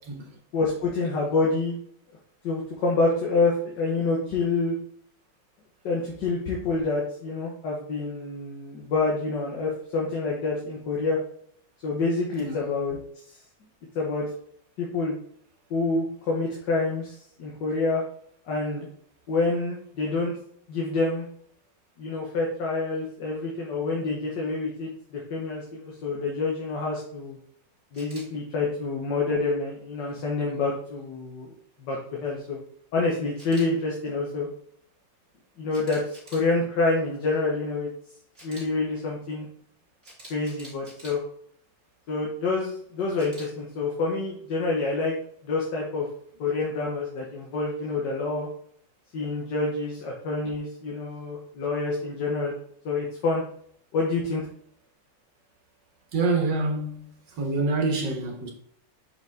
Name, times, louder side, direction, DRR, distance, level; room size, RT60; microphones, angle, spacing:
voice 1, 0.0-0.4 12.4-12.6 56.1-58.5, right 3 dB, 70° right, 2.0 m, -27 dB
voice 2, 0.5-1.8 2.4-4.8 5.8-11.2 11.8-13.0 14.0-14.2 14.8-15.1 15.7-18.0 18.5-18.9 19.3-20.3 20.7-21.3 22.0-27.4 27.9-31.5 31.8-32.6 32.9-34.5 35.6-37.9 38.4-39.5 40.3-41.2 42.1-45.1 45.4-46.1 46.4-48.5 49.1-52.5 52.9-53.4 53.9-54.5, left 3 dB, 70° left, 1.8 m, -27 dB
Camera, 27.9-28.2 33.4-33.7 35.7-36.5 38.3-38.6 40.0-41.1 43.2-43.5, right 1 dB, 30° right, 2.6 m, -46 dB
6.6 x 5.1 x 3.5 m
omnidirectional pair, 2.0 m